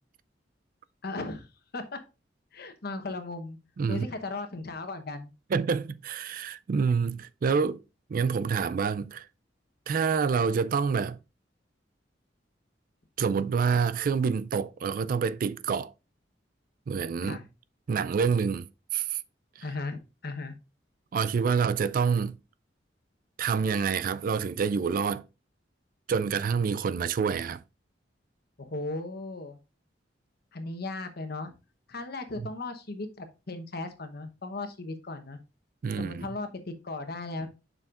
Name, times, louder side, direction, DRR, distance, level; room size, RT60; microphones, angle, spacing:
voice 1, 1.0-1.5 1.7-2.0 2.5-3.6 3.9-5.3 17.2-17.5 19.6-20.5 28.6-29.6 30.5-31.5 31.9-35.4 35.9-37.5, left 2 dB, 60° left, 1.0 m, -36 dB
voice 2, 3.8-4.1 5.5-7.8 8.1-9.3 9.9-11.2 13.2-15.9 16.9-17.4 17.9-19.2 19.6-19.7 21.1-22.4 23.4-25.2 26.1-27.6 32.4-32.5 35.8-36.3, right 6 dB, 50° right, 0.3 m, -27 dB
6.9 x 5.7 x 2.5 m
head